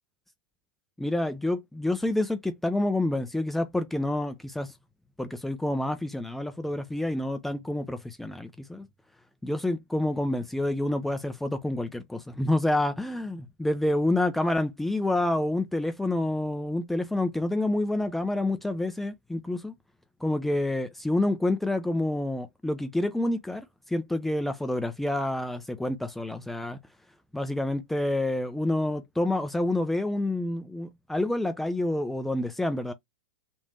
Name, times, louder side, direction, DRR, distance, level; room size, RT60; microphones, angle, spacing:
voice 1, 1.0-4.7 5.2-8.9 9.4-19.7 20.2-26.8 27.3-32.9, left 1 dB, 5° left, 0.5 m, -28 dB
3.2 x 2.6 x 3.4 m
hypercardioid pair, 100°, 5 cm